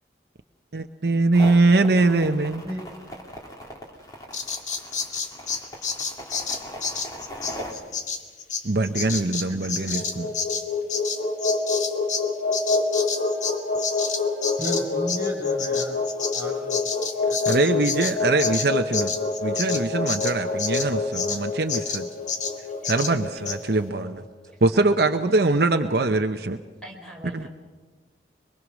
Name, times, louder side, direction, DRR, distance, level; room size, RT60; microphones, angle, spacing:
voice 1, 0.7-2.6 8.6-10.3 17.5-19.1 19.4-22.1 22.8-24.2 24.6-26.6 27.3-27.5, right 2 dB, 60° right, 6 dB, 0.8 m, -22 dB
sound 1, 1.3-7.7, equal, 20° left, 3.1 m, -38 dB
Bird vocalization bird call bird song, 4.3-12.3 12.5-21.4 21.7-22.0 22.3-22.6 22.8-23.1 23.5-23.6, left 5 dB, 40° left, 1.8 m, -30 dB
voice 2, 9.5-9.9 14.6-16.0 16.3-16.8, right 1 dB, 15° right, 0 dB, 5.3 m, -34 dB
sound 2, 9.8-24.1, left 3 dB, 85° left, 3.6 m, -27 dB
voice 3, 22.5-22.9 24.5-24.6 24.9-25.1 26.8-27.5, equal, 5° left, -1 dB, 4.6 m, -44 dB
23.5 x 23.0 x 6.3 m, 1.4 s
head